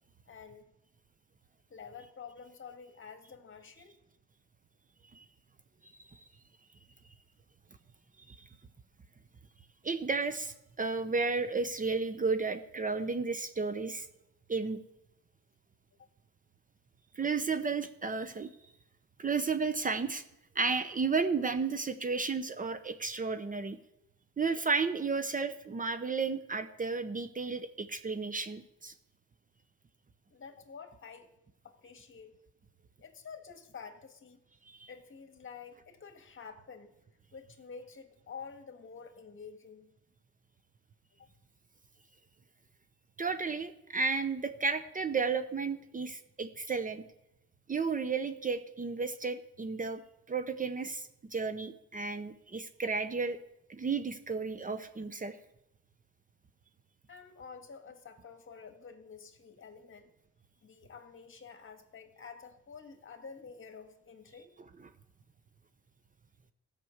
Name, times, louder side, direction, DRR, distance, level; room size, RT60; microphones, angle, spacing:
voice 1, 0.3-0.6 1.7-4.0 16.0-16.1 30.3-31.3 31.6-32.3 33.0-34.4 34.9-37.0 37.3-39.9 41.2-41.3 57.1-60.1 60.6-64.5, left 6 dB, 40° left, 7 dB, 1.7 m, -49 dB
voice 2, 5.8-6.2 8.3-8.4 9.8-14.1 14.5-14.8 17.2-18.5 19.2-20.2 20.5-23.8 24.4-28.9 34.7-34.9 43.2-47.0 47.7-50.0 50.3-53.4 53.7-55.4, right 4 dB, 25° right, 10 dB, 0.8 m, -33 dB
14.0 x 6.1 x 8.0 m, 0.86 s
cardioid pair, 90°, 30 cm